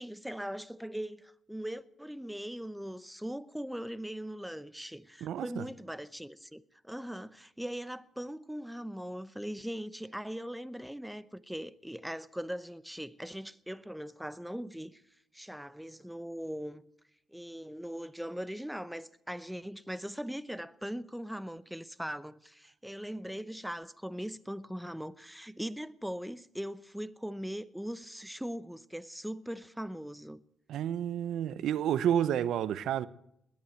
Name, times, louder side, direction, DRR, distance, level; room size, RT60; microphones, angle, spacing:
voice 1, 0.0-15.0 15.3-16.8 17.3-30.4, equal, 5° right, 0.8 m, -40 dB
voice 2, 5.2-5.6 30.7-33.1, right 10 dB, 75° right, 0.7 m, -30 dB
20.5 x 8.8 x 7.8 m
cardioid pair, 90°, 0 cm